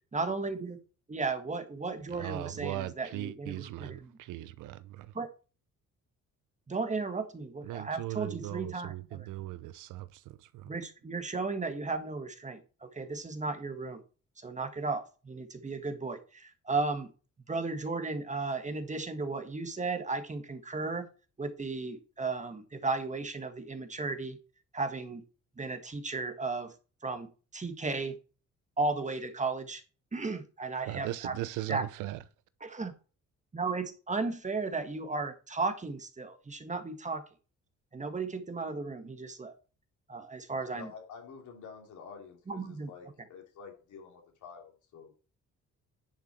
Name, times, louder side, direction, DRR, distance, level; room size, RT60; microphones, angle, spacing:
voice 1, 0.1-0.8 1.1-4.1 5.1-5.3 6.7-9.3 10.6-14.0 14.4-17.1 17.5-21.1 21.4-24.4 24.7-25.2 25.6-26.7 27.0-28.1 28.8-29.8 30.1-31.4 31.7-31.8 32.6-32.9 33.5-37.2 37.9-39.5 40.1-40.9 42.5-42.9, right 3 dB, 25° right, 1.6 m, -35 dB
voice 2, 2.1-5.1 7.6-10.7 30.9-32.2, right 15 dB, 90° right, 0.8 m, -39 dB
voice 3, 40.5-45.1, left 6 dB, 75° left, 3.3 m, -49 dB
10.5 x 6.0 x 4.3 m
cardioid pair, 90°, 30 cm